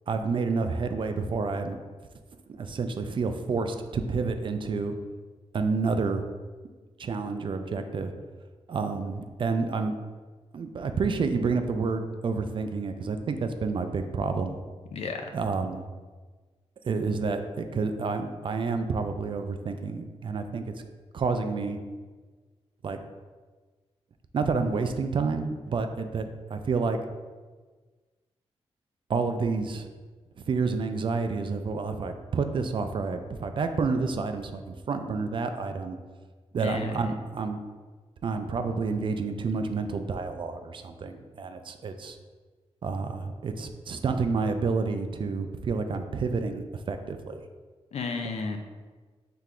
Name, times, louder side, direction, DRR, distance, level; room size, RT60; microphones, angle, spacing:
voice 1, 0.1-1.8 2.5-5.0 5.5-6.2 7.0-8.1 8.7-9.9 10.5-14.6 15.3-15.9 16.8-20.6 21.1-21.8 22.8-23.0 24.3-27.0 29.1-29.9 30.4-36.0 36.5-37.6 38.2-42.2 42.8-47.4, right 4 dB, 50° right, 7 dB, 0.4 m, -29 dB
voice 2, 14.9-15.2 36.6-37.0 47.9-48.6, left 4 dB, 75° left, 5 dB, 0.5 m, -32 dB
5.8 x 3.3 x 2.4 m, 1.4 s
wide cardioid pair, 135°, 11 cm